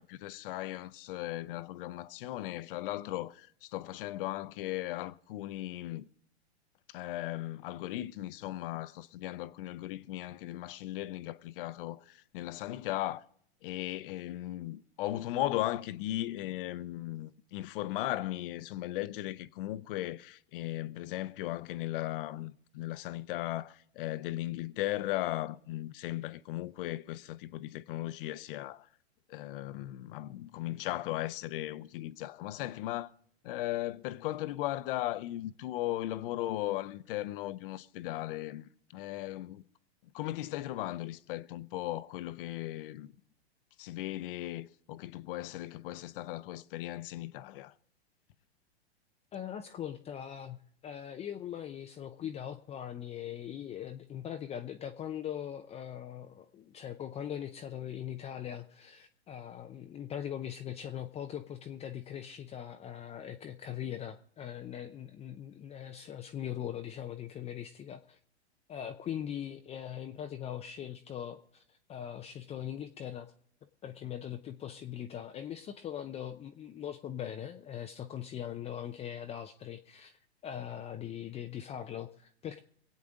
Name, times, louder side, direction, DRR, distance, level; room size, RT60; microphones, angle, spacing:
voice 1, 0.0-6.0 6.9-13.2 13.6-28.9 29.3-33.1 33.4-39.6 40.1-43.1 43.8-47.7, left 15 dB, 55° left, 0.8 m, -37 dB
voice 2, 49.3-68.2 68.7-71.6 71.9-73.3 73.8-82.6, left 10 dB, 20° left, 0.6 m, -41 dB
25.0 x 8.5 x 3.7 m
hypercardioid pair, 120°, 33 cm